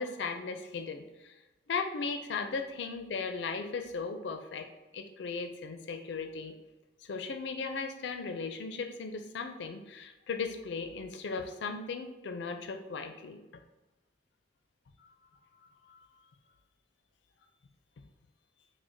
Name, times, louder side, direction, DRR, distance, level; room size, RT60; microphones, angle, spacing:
voice 1, 0.0-1.4 1.7-4.7 4.9-6.6 7.0-13.4 15.0-15.1 15.9-16.0, left 4 dB, 65° left, 7 dB, 0.4 m, -37 dB
4.9 x 2.1 x 2.6 m, 1.1 s
head